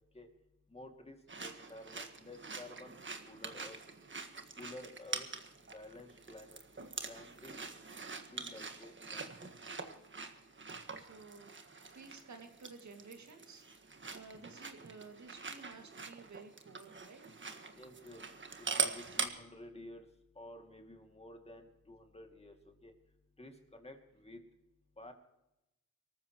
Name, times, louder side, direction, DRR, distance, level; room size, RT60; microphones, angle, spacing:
voice 1, 0.7-3.0 3.3-3.8 4.6-5.3 5.7-6.6 7.0-7.6 8.3-9.5 9.8-9.9 17.7-18.2 18.6-20.1 20.4-22.5 22.8-22.9 23.4-24.4 25.0-25.1, left 1 dB, 20° left, 4 dB, 2.4 m, -52 dB
sound 1, 1.3-19.3, right 4 dB, 35° right, 1.6 m, -43 dB
voice 2, 10.9-13.6 14.1-17.3, right 4 dB, 60° right, 4 dB, 2.4 m, -53 dB
24.0 x 14.5 x 3.1 m, 0.91 s
cardioid pair, 85°, 32 cm